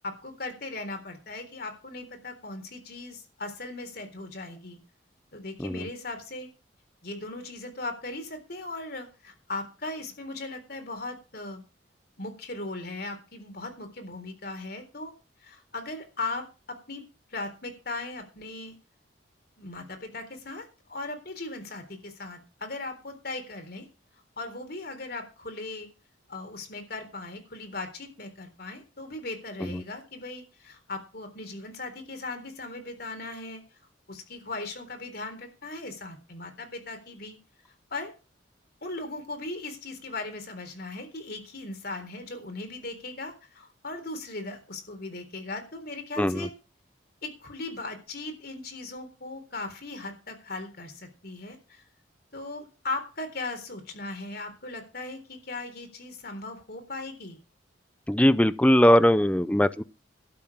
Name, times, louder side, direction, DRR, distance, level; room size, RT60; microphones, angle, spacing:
voice 1, 0.0-4.8 5.3-6.5 7.0-11.6 12.2-15.1 15.4-17.0 17.3-18.7 19.6-23.8 24.4-25.9 26.3-33.6 34.1-37.4 37.9-38.1 38.8-46.5 47.2-51.8 52.3-57.4, left 2 dB, 55° left, 3.8 m, -38 dB
voice 2, 46.2-46.5 58.1-59.8, equal, 5° left, 0.6 m, -21 dB
12.5 x 7.6 x 7.3 m
head